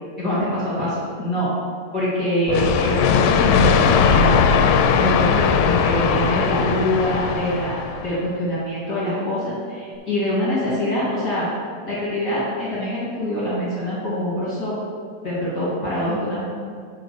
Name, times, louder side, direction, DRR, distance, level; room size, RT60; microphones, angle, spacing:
voice 1, 0.2-1.5 1.9-4.3 4.8-11.5 11.9-14.8 15.2-16.4, equal, 35° left, -9 dB, 1.7 m, -24 dB
sound 1, 2.5-8.2, left 6 dB, 85° left, 2.5 m, -18 dB
7.7 x 4.6 x 6.6 m, 2.2 s
omnidirectional pair, 4.5 m